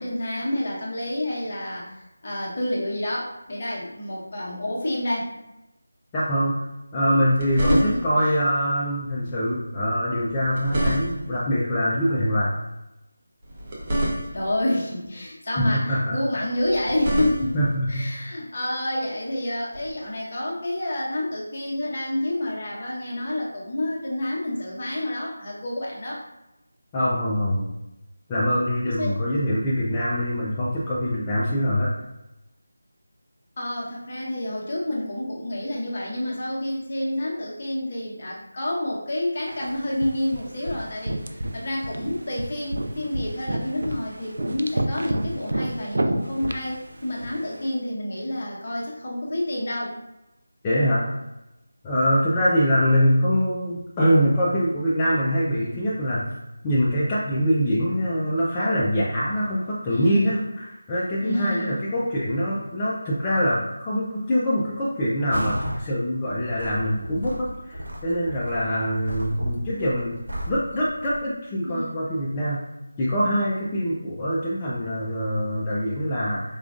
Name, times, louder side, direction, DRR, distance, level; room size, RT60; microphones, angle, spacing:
voice 1, 0.0-5.3 7.6-8.4 14.3-26.2 29.0-29.2 33.6-50.0 59.9-60.4 61.2-61.9 71.6-71.9, left 1 dB, 40° left, -4 dB, 1.0 m, -29 dB
voice 2, 6.1-6.6 6.9-12.5 15.6-16.2 17.5-17.9 26.9-27.7 28.3-31.9 50.6-51.1 51.8-56.3 56.6-70.2 70.5-72.6 73.0-76.6, equal, 15° left, -7 dB, 0.5 m, -24 dB
sound 1, 7.1-8.3 10.3-11.4 13.4-14.6 16.6-17.8 19.7-19.9, right 1 dB, 25° right, 0.8 m, -28 dB
sound 2, 39.5-47.7, right 1 dB, 65° right, 0.4 m, -31 dB
sound 3, 65.3-65.8 66.3-71.2, equal, 85° right, 1.1 m, -34 dB
4.9 x 2.3 x 2.4 m, 0.95 s
figure-of-eight pair, 170°, 0 cm